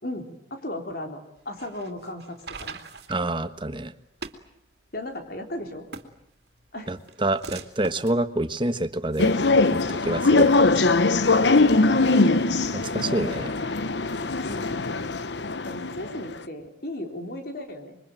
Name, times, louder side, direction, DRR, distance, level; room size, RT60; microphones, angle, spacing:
voice 1, 0.0-2.8 4.9-5.9 6.7-6.9 11.4-12.3 12.9-13.4 14.4-15.0 15.6-18.0, left 1 dB, 55° left, 4 dB, 4.0 m, -36 dB
sound 1, 1.4-9.7, right 4 dB, 60° right, 2.7 m, -43 dB
voice 2, 3.1-3.9 6.9-9.3 9.7-10.5 12.7-13.5, right 1 dB, 25° right, 10 dB, 1.3 m, -27 dB
sound 2, 9.2-16.3, left 3 dB, 70° left, 1.0 m, -21 dB
27.0 x 23.5 x 9.1 m, 0.74 s
head